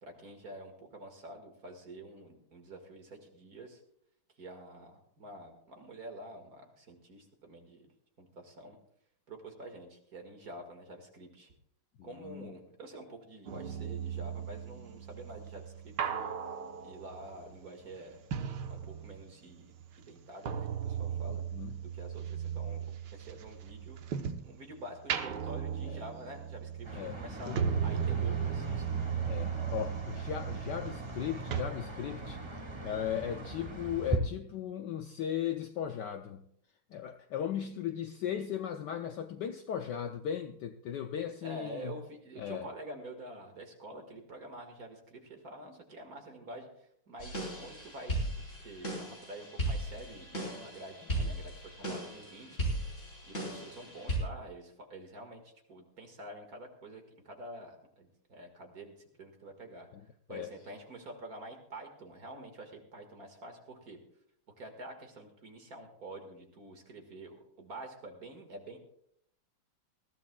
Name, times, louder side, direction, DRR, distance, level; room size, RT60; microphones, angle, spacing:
voice 1, 0.0-3.8 4.4-7.9 8.2-8.8 9.3-11.5 12.0-16.3 16.8-18.2 18.7-21.4 21.8-22.9 23.1-24.0 24.4-28.9 41.4-52.7 53.2-59.9 60.3-64.0 64.6-68.8, right 1 dB, 45° right, 3 dB, 2.1 m, -48 dB
voice 2, 12.0-12.6 21.3-21.8 25.8-26.0 26.9-27.2 27.5-27.6 29.3-32.4 32.8-36.5 36.9-42.0 42.4-42.7 51.2-51.3 59.9-60.0 60.3-60.5, left 9 dB, 70° left, 7 dB, 1.0 m, -37 dB
sound 1, 13.5-19.4 19.7-24.6 25.0-31.2 31.5-31.6, right 7 dB, 60° right, 1.4 m, -36 dB
sound 2, 26.8-34.2, right 2 dB, 20° right, 0.8 m, -40 dB
sound 3, 47.2-54.2, right 1 dB, 35° left, 4.3 m, -37 dB
20.5 x 15.0 x 2.3 m, 0.71 s
omnidirectional pair, 2.4 m